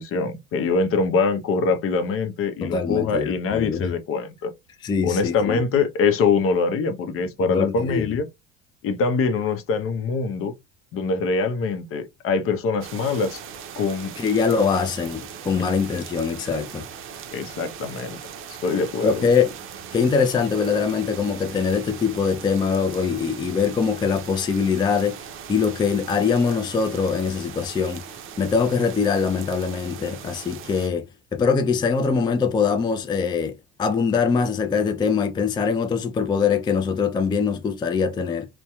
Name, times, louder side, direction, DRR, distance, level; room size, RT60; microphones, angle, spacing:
voice 1, 0.0-4.5 5.0-8.3 8.8-10.5 10.9-13.4 13.8-14.1 17.3-18.2 18.6-19.1, left 4 dB, 50° left, 0.7 m, -23 dB
voice 2, 2.6-3.9 4.8-5.6 7.5-8.1 14.2-16.9 19.0-19.6 19.9-25.2 25.5-28.0 28.4-38.5, left 5 dB, 15° left, 0.3 m, -23 dB
sound 1, 12.8-30.9, right 7 dB, 45° right, 0.6 m, -39 dB
2.7 x 2.2 x 2.3 m
supercardioid pair, 80°, 29 cm